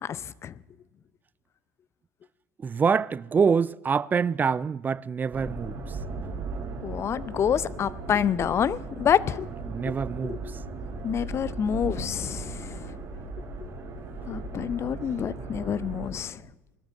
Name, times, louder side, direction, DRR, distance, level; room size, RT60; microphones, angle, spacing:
voice 1, 0.0-0.5 6.8-9.5 9.9-10.0 10.2-10.4 11.0-12.9 14.3-16.4, left 8 dB, 35° left, 0.6 m, -27 dB
voice 2, 2.6-6.0 9.7-10.4, right 6 dB, 25° right, 0.4 m, -25 dB
sound 1, 5.3-16.1, right 3 dB, 40° right, 5.3 m, -37 dB
20.5 x 13.0 x 3.8 m
hypercardioid pair, 80°, 8 cm